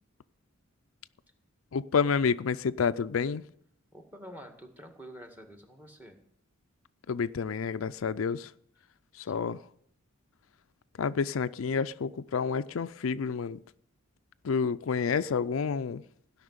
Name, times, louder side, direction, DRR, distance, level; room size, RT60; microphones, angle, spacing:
voice 1, 1.7-3.4 7.1-8.5 9.1-9.6 11.0-13.6 14.4-16.0, left 5 dB, 75° left, 13 dB, 0.4 m, -29 dB
voice 2, 3.9-6.2, equal, 10° right, 5 dB, 1.9 m, -48 dB
16.0 x 5.9 x 9.6 m, 0.68 s
head